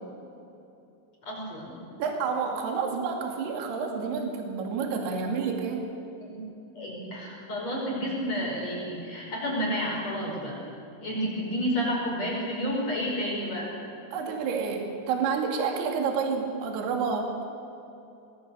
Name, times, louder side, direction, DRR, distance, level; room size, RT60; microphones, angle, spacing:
voice 1, 1.2-1.8 6.2-6.4 6.7-10.6 11.0-13.7, equal, 35° left, -3 dB, 6.1 m, -30 dB
voice 2, 2.0-5.8 14.1-17.5, right 5 dB, 55° right, 2 dB, 4.2 m, -29 dB
26.0 x 20.0 x 7.1 m, 2.8 s
omnidirectional pair, 5.9 m